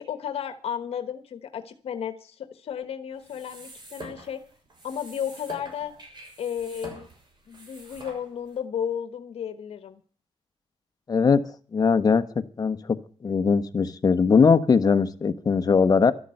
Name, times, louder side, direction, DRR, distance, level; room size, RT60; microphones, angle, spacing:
voice 1, 0.0-4.4 4.8-5.9 6.4-7.1 7.5-10.0, left 8 dB, 70° left, 11 dB, 1.3 m, -33 dB
sound 1, 3.1-8.6, right 1 dB, 45° right, 6.3 m, -46 dB
voice 2, 11.1-11.4 11.7-12.2 12.6-13.0 13.2-16.1, left 5 dB, 40° left, 10 dB, 1.2 m, -20 dB
12.5 x 11.5 x 7.8 m, 0.43 s
cardioid pair, 105°, 10 cm